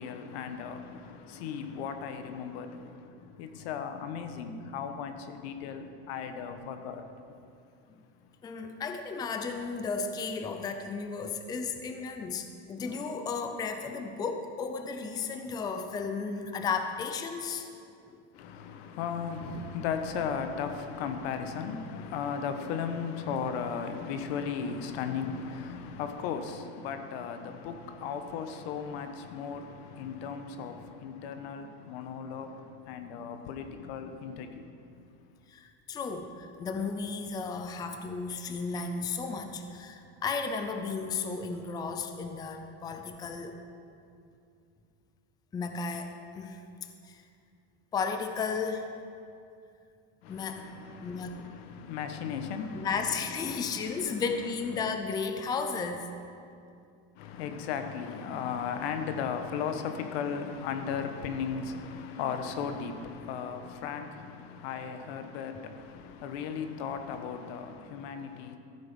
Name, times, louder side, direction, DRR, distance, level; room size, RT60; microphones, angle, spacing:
voice 1, 0.0-7.4 18.3-34.8 50.2-52.9 53.5-54.2 57.2-68.6, left 6 dB, 75° left, 1.2 m, -36 dB
voice 2, 8.4-17.7 18.1-18.2 35.5-43.5 45.5-46.6 47.0-47.2 47.9-48.9 50.3-51.4 52.7-56.1, left 5 dB, 15° left, 0.5 m, -34 dB
14.0 x 7.9 x 5.4 m
supercardioid pair, 150°, 31 cm